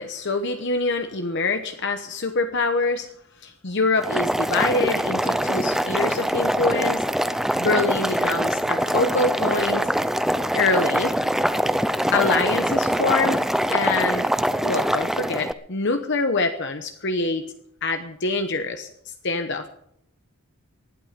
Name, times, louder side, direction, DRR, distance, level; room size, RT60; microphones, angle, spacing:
voice 1, 0.0-3.1 3.4-7.0 7.6-9.9 10.5-11.1 12.1-13.4 13.7-14.3 14.6-17.5 17.8-18.9 19.2-19.7, left 3 dB, 55° left, 7 dB, 1.0 m, -25 dB
Boiling, 4.0-15.5, equal, ahead, 0.5 m, -23 dB
20.0 x 12.0 x 5.2 m, 0.71 s
head